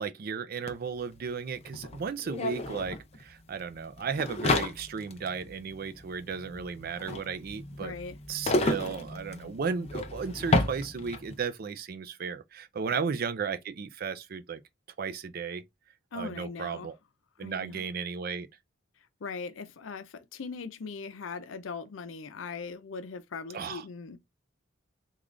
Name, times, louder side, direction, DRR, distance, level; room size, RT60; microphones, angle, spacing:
voice 1, 0.0-8.0 8.3-14.6 15.0-15.6 16.1-16.9 17.4-18.5 23.5-23.8, right 5 dB, 50° right, 0.4 m, -35 dB
sound 1, 0.7-0.8 1.0-11.4, left 2 dB, 30° left, 0.5 m, -32 dB
voice 2, 7.8-8.2 12.9-13.0 16.1-16.9 17.4-17.9 19.2-24.2, left 4 dB, 80° left, 0.5 m, -40 dB
3.7 x 2.4 x 3.1 m
head